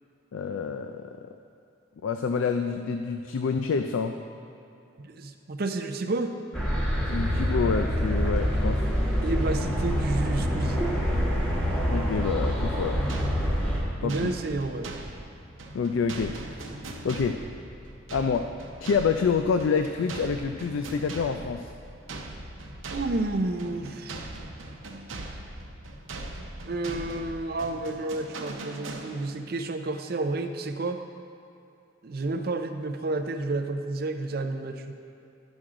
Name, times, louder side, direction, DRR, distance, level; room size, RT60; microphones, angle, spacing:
voice 1, 0.3-1.1 2.0-4.2 7.0-8.9 11.9-13.0 14.0-14.3 15.7-16.3 17.0-17.4 18.1-18.5 18.8-21.7, left 5 dB, 90° left, 6 dB, 0.4 m, -27 dB
voice 2, 5.0-6.3 9.2-10.8 14.0-14.9 22.9-24.2 26.6-31.0 32.0-34.8, right 2 dB, 50° right, 7 dB, 0.5 m, -30 dB
sound 1, 6.5-13.8, equal, 5° left, 1.1 m, -26 dB
sound 2, 13.1-29.5, right 2 dB, 90° right, 0.8 m, -40 dB
11.5 x 6.2 x 3.7 m, 2.7 s
head